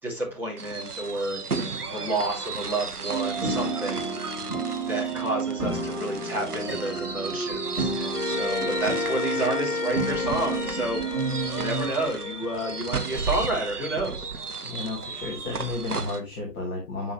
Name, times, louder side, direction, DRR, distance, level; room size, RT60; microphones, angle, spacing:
voice 1, 0.0-4.2 4.8-11.0 11.3-14.3, right 2 dB, 5° right, -6 dB, 2.1 m, -30 dB
sound 1, 0.6-16.2, right 4 dB, 80° right, 1.0 m, -35 dB
sound 2, 3.1-12.0, right 3 dB, 20° right, 4.3 m, -31 dB
sound 3, 8.1-14.6, left 5 dB, 65° left, 0.8 m, -33 dB
voice 2, 14.6-17.1, left 3 dB, 10° left, -3 dB, 1.1 m, -32 dB
8.1 x 5.5 x 2.8 m, 0.25 s
figure-of-eight pair, 135°, 45 cm